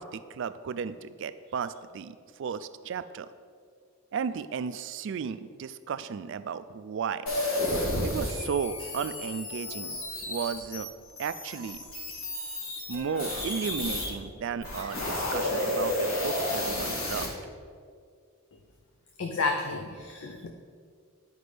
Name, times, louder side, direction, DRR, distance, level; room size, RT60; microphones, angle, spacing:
voice 1, 0.0-3.3 4.1-7.3 8.0-10.0 10.3-10.9 11.2-11.8 12.9-17.3, right 6 dB, 60° right, 13 dB, 0.3 m, -34 dB
sound 1, 7.3-14.1 14.5-17.3, left 1 dB, 85° left, 1.9 m, -32 dB
voice 2, 19.2-20.5, left 4 dB, 65° left, 3 dB, 0.5 m, -31 dB
11.0 x 5.1 x 3.3 m, 2.1 s
head